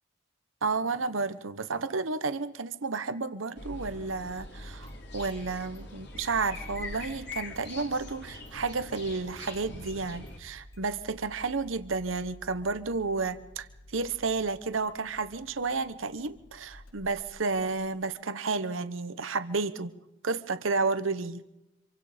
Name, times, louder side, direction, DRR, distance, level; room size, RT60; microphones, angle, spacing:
voice 1, 0.6-13.7 13.9-19.9 20.2-21.4, right 4 dB, 85° right, 12 dB, 1.1 m, -31 dB
sound 1, 3.6-10.4, left 2 dB, 60° left, 3.6 m, -43 dB
Engine starting, 4.3-4.4 4.8-5.4 5.7-5.8 6.2-18.1, equal, 85° left, 3.3 m, -54 dB
26.5 x 24.0 x 5.1 m, 0.94 s
head